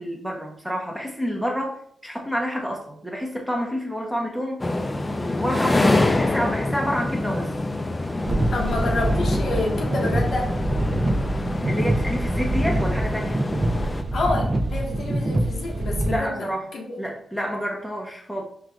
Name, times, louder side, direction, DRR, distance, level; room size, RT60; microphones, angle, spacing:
voice 1, 0.0-4.6 5.3-7.5 11.6-13.4 16.1-16.7 17.0-18.4, equal, ahead, 0 dB, 0.9 m, -28 dB
sound 1, 4.6-14.0, left 2 dB, 25° left, 0.3 m, -26 dB
sound 2, 8.2-16.2, right 1 dB, 30° right, 0.7 m, -25 dB
voice 2, 8.5-10.5 14.1-17.0, left 2 dB, 65° left, -1 dB, 1.1 m, -28 dB
4.6 x 2.5 x 3.4 m, 0.64 s
cardioid pair, 80°, 0 cm